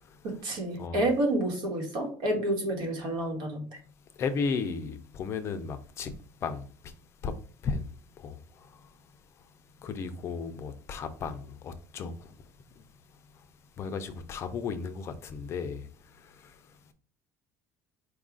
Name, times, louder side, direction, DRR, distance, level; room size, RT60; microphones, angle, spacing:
voice 1, 0.2-3.8, right 1 dB, 70° right, 1.5 m, -29 dB
voice 2, 4.2-6.1 6.4-6.9 7.2-7.3 7.6-7.9 8.2-8.8 9.8-12.3 13.8-15.9 16.1-16.6, left 5 dB, 35° left, 0.5 m, -35 dB
4.6 x 2.4 x 3.7 m
cardioid pair, 155°, 8 cm